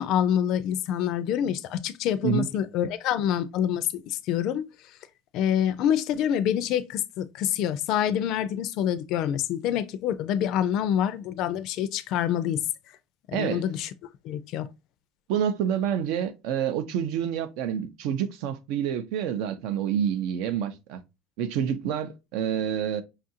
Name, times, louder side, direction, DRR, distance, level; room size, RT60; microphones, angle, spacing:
voice 1, 0.0-4.6 5.3-12.6 13.3-13.9 14.2-14.7, left 10 dB, 50° left, 0.4 m, -26 dB
voice 2, 13.3-13.6 15.3-21.0 21.4-23.0, right 9 dB, 65° right, 0.5 m, -28 dB
5.5 x 2.4 x 2.7 m
cardioid pair, 155°, 0 cm